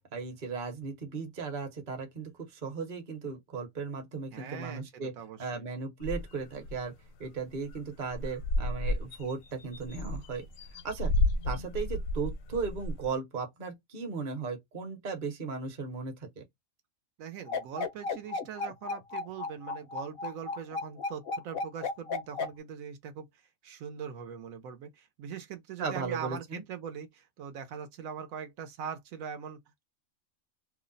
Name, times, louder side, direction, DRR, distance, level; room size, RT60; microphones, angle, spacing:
voice 1, 0.1-5.1 5.4-6.9 7.2-10.4 10.8-11.1 11.4-16.4 25.8-26.6, right 5 dB, 40° right, 0.8 m, -36 dB
voice 2, 4.3-4.8 5.2-5.7 17.2-23.3 23.6-29.6, right 7 dB, 85° right, 1.1 m, -41 dB
sound 1, 6.0-6.8 7.2-7.3 7.5-7.8 8.1-13.1, left 2 dB, 80° left, 1.0 m, -32 dB
sound 2, 17.5-22.5, left 3 dB, 60° left, 0.6 m, -34 dB
2.7 x 2.1 x 3.8 m
omnidirectional pair, 1.4 m